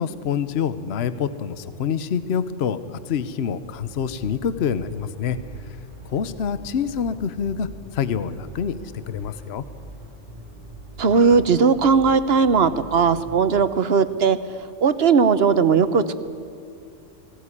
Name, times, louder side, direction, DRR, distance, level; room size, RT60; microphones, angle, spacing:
voice 1, 0.0-5.4 6.1-7.7 7.9-8.8 9.1-9.6, left 7 dB, 60° left, 13 dB, 1.0 m, -26 dB
sound 1, 3.6-13.4, right 2 dB, 30° left, 7.6 m, -42 dB
voice 2, 11.0-14.4 14.8-16.2, right 5 dB, 55° right, 13 dB, 1.1 m, -18 dB
20.0 x 16.5 x 9.7 m, 2.6 s
omnidirectional pair, 1.3 m